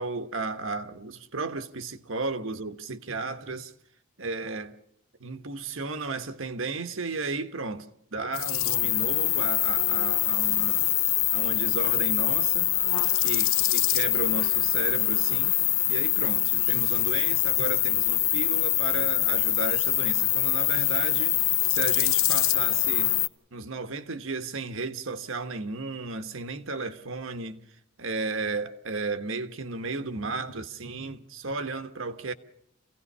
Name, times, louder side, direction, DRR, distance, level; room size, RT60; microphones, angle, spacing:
voice 1, 0.0-3.7 4.2-4.7 5.2-10.9 11.3-12.7 13.2-15.6 15.9-21.4 21.7-23.1 23.5-27.6 28.0-32.3, right 3 dB, 70° right, 1.4 m, -34 dB
sound 1, 8.3-23.3, left 15 dB, 85° left, 0.7 m, -24 dB
28.0 x 17.0 x 5.6 m
head